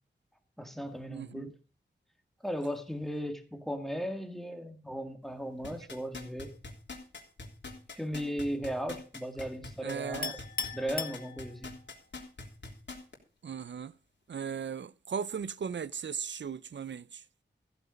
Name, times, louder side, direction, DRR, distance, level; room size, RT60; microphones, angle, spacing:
voice 1, 0.6-1.5 2.4-6.5 7.9-10.4 10.7-11.7, equal, ahead, 2.1 m, -36 dB
voice 2, 1.1-1.5 9.8-10.4 13.4-13.9 14.3-17.2, right 7 dB, 75° right, 0.6 m, -37 dB
sound 1, 5.6-13.1 13.6-13.7, left 3 dB, 75° left, 3.3 m, -43 dB
Chink clink, 10.2-11.9, left 5 dB, 50° left, 1.5 m, -38 dB
15.0 x 8.9 x 5.3 m
wide cardioid pair, 100°, 19 cm